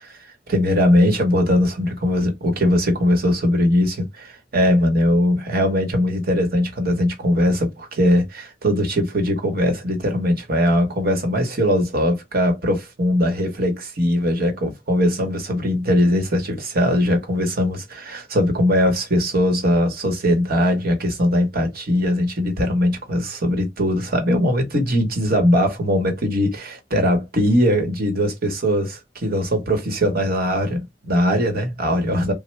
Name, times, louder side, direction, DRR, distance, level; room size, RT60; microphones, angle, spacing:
voice 1, 0.1-32.3, equal, 55° right, 1.1 m, -20 dB
3.1 x 2.1 x 3.2 m
head